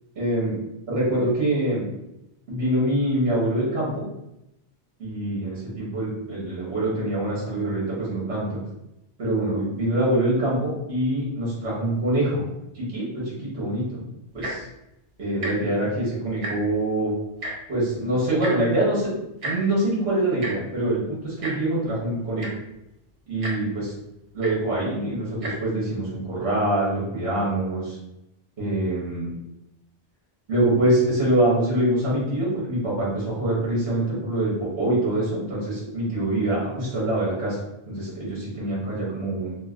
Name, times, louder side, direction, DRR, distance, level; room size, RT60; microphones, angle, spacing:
voice 1, 0.2-0.5 0.9-1.9 2.5-4.1 5.0-8.6 9.2-12.4 12.7-14.0 14.3-14.6 15.2-17.1 17.7-19.1 19.4-22.5 23.3-23.9 24.3-28.0 28.6-29.3 30.5-37.6 37.9-39.6, right 1 dB, 60° right, -6 dB, 1.3 m, -24 dB
Tick-tock, 14.3-14.7 15.3-15.5 15.8-16.0 16.3-16.8 17.4-17.5 18.4-18.5 19.4-19.5 20.4-20.5 21.4-21.5 22.1-22.2 22.4-22.7 23.4-23.5 24.4-24.5 25.3-25.5 26.2-26.3, right 2 dB, 40° right, 0.5 m, -31 dB
3.1 x 2.7 x 2.4 m, 0.86 s
omnidirectional pair, 1.2 m